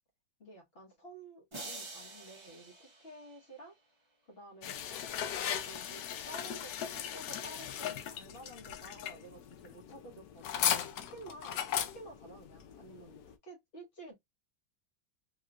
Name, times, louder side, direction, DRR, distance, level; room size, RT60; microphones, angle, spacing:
voice 1, 0.4-3.8 4.3-4.8 5.6-14.1, right 2 dB, 40° left, 1.2 m, -52 dB
sound 1, 1.5-3.8, right 2 dB, 35° right, 0.5 m, -47 dB
sound 2, 4.6-13.3, left 10 dB, 70° left, 0.9 m, -37 dB
3.5 x 2.9 x 2.4 m
omnidirectional pair, 2.0 m